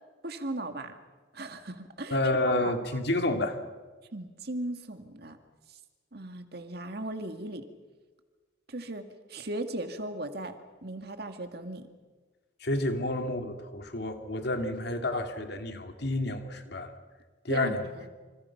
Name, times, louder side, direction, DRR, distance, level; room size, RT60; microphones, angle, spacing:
voice 1, 0.2-0.9 1.3-2.2 2.5-3.0 4.1-5.4 6.1-7.7 8.7-9.0 9.3-10.5 10.8-11.9 17.5-18.1, right 2 dB, 50° right, 7 dB, 2.1 m, -37 dB
voice 2, 2.1-3.6 12.6-16.9 17.4-17.8, left 1 dB, 55° left, 5 dB, 2.5 m, -29 dB
28.0 x 26.0 x 5.9 m, 1.4 s
head